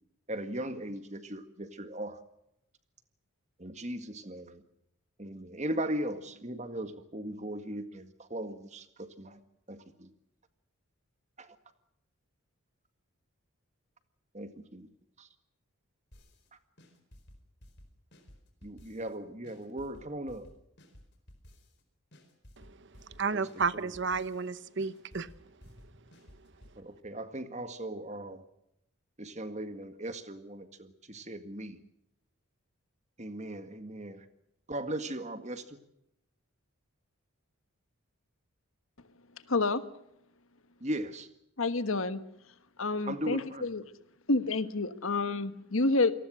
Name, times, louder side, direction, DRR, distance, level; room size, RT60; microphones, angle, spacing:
voice 1, 0.3-2.2 3.6-4.6 5.2-9.4 9.7-10.1 11.4-11.5 14.3-14.9 15.2-15.3 18.6-20.5 23.3-23.4 23.7-23.8 26.8-28.4 29.2-31.8 33.2-34.2 34.7-35.6 40.8-41.3 43.1-43.7, right 1 dB, 30° right, 1.9 m, -38 dB
sound 1, 16.1-16.5 16.8-19.2 19.4-21.8 22.1-24.5 24.8-26.8, equal, 50° left, 4.4 m, -55 dB
voice 2, 23.2-25.3, right 5 dB, 55° right, 0.9 m, -31 dB
voice 3, 39.5-39.8 41.6-42.2 42.8-43.8 44.3-46.1, left 3 dB, 65° left, 1.4 m, -28 dB
28.0 x 19.0 x 6.4 m
head